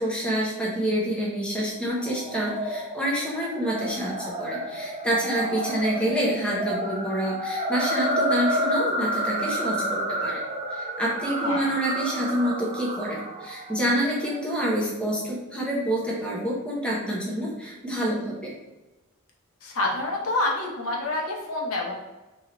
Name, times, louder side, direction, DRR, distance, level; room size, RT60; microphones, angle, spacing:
voice 1, 0.0-9.8 10.2-10.4 10.7-18.5, equal, 5° left, -5 dB, 0.7 m, -27 dB
sound 1, 2.0-14.4, right 1 dB, 25° right, 0.4 m, -30 dB
voice 2, 19.6-21.9, left 2 dB, 65° left, -1 dB, 0.8 m, -27 dB
3.0 x 2.9 x 3.8 m, 1.1 s
head